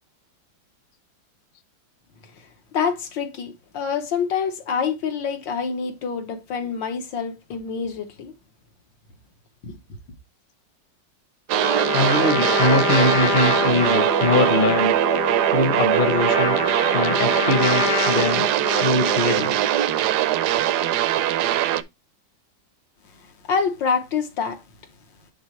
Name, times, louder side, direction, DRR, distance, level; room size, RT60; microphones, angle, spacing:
voice 1, 2.7-8.3 9.6-9.8 23.5-24.6, left 6 dB, 80° left, 1.9 m, -26 dB
Trumpet, 11.5-19.6, left 7 dB, 60° left, 1.0 m, -27 dB
sound 1, 11.5-21.8, right 12 dB, 70° right, 1.0 m, -21 dB
voice 2, 11.9-14.9 15.5-16.6 16.9-18.5 18.8-19.6, left 3 dB, 40° left, 0.8 m, -22 dB
9.7 x 3.8 x 3.1 m
omnidirectional pair, 2.0 m